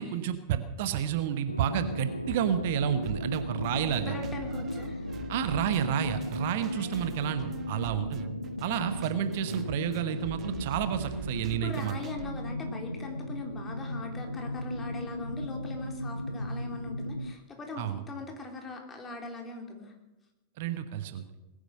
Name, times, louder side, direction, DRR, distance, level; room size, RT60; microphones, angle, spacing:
voice 1, 0.0-4.2 5.3-8.3 8.6-11.9 17.8-18.0 20.6-21.2, right 10 dB, 50° right, 10 dB, 1.1 m, -30 dB
sound 1, 1.5-17.3, left 1 dB, 85° left, 0.5 m, -36 dB
sound 2, 3.0-12.3, right 8 dB, 30° right, 0.9 m, -46 dB
voice 2, 3.7-5.1 6.6-7.2 11.6-19.9, left 2 dB, 20° left, 2 dB, 3.5 m, -41 dB
20.0 x 10.0 x 6.6 m, 0.99 s
figure-of-eight pair, 90°, 0 cm